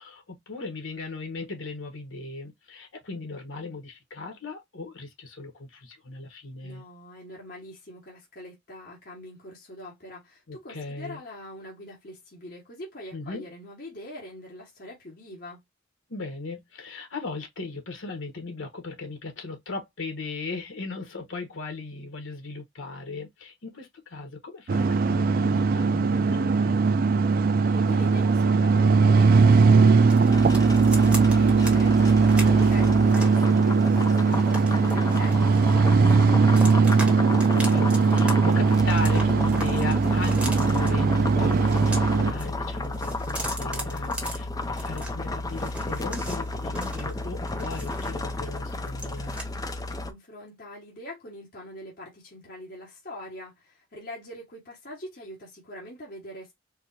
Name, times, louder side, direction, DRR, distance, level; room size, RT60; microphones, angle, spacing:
voice 1, 0.0-6.8 10.5-11.2 13.1-13.4 16.1-27.0 32.4-32.6 37.2-49.4, left 3 dB, 75° left, 1.1 m, -37 dB
voice 2, 6.6-15.6 27.7-36.7 50.1-56.5, left 1 dB, 50° left, 1.5 m, -43 dB
sound 1, 24.7-42.3, right 4 dB, 45° right, 0.3 m, -20 dB
sound 2, 30.1-31.8 32.1-33.4 33.9-35.9 36.2-37.1 37.4-38.3 38.6-40.9 41.5-42.5 42.8-45.1 45.5-48.3 48.7-49.4, right 1 dB, 5° right, 1.0 m, -38 dB
sound 3, 30.3-50.1, left 2 dB, 20° left, 0.5 m, -32 dB
4.6 x 2.1 x 2.7 m
head